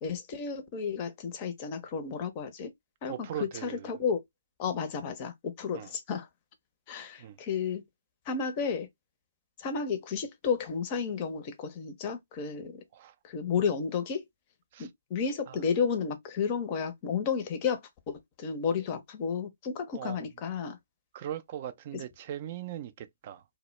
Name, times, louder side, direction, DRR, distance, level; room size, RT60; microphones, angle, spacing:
voice 1, 0.0-2.7 3.0-3.3 3.6-4.2 4.6-6.3 6.9-7.8 8.3-8.9 9.6-12.8 13.2-14.2 14.8-17.8 18.1-20.8, left 6 dB, 30° left, 0.5 m, -32 dB
voice 2, 3.1-4.0 5.7-5.9 7.2-7.4 12.9-13.2 14.7-14.9 15.5-15.6 19.9-20.2 21.1-23.4, right 10 dB, 35° right, 0.3 m, -39 dB
2.0 x 2.0 x 3.0 m
figure-of-eight pair, 140°, 0 cm